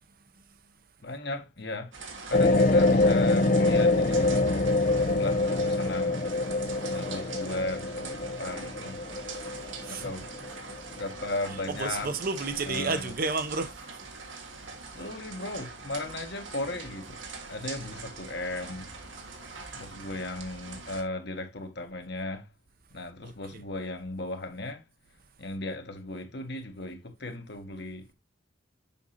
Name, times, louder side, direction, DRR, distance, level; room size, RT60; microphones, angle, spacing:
voice 1, 1.0-1.9 2.3-4.7 5.0-6.2 6.9-9.0 9.9-10.3 11.0-12.1 12.6-13.1 14.9-17.2 17.5-18.8 19.7-22.5 22.9-24.8 25.4-28.1, left 2 dB, 55° left, 1.3 m, -36 dB
sound 1, 1.9-21.0, right 4 dB, 75° right, 1.5 m, -43 dB
sound 2, 2.3-11.1 11.6-11.7, left 2 dB, 40° left, 0.5 m, -25 dB
voice 2, 11.5-14.0 23.2-23.6, right 3 dB, 45° right, 0.7 m, -32 dB
7.1 x 5.3 x 2.8 m
head